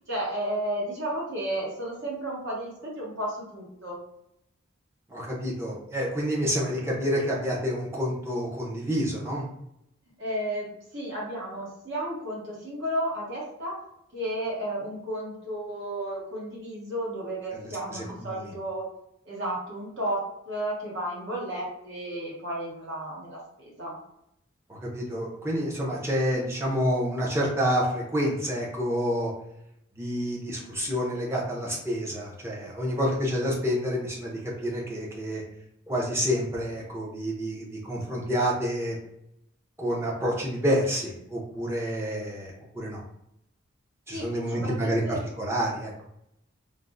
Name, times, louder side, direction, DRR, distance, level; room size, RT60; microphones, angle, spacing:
voice 1, 0.1-4.0 10.2-13.7 14.1-18.9 19.2-24.0 44.1-45.2, right 1 dB, 60° right, -5 dB, 1.1 m, -33 dB
voice 2, 5.1-9.4 17.6-18.5 24.7-29.3 30.0-35.4 35.9-39.0 39.8-43.0 44.1-45.9, equal, 10° right, -3 dB, 0.5 m, -28 dB
3.3 x 2.0 x 2.5 m, 0.79 s
head